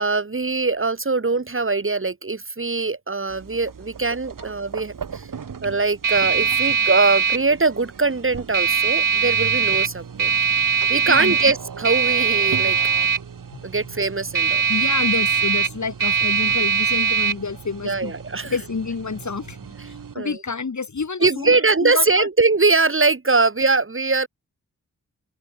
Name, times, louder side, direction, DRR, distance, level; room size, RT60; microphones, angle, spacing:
voice 1, 0.0-5.3 5.6-10.3 10.9-12.8 13.6-14.6 17.8-18.6 20.1-20.4 21.2-24.3, right 3 dB, 40° right, 2.6 m, -22 dB
sound 1, 3.3-20.1, right 6 dB, 90° right, 2.6 m, -23 dB
voice 2, 14.7-18.1 18.4-19.6 19.8-22.3, left 5 dB, 65° left, 4.0 m, -28 dB
open air
wide cardioid pair, 70°, 31 cm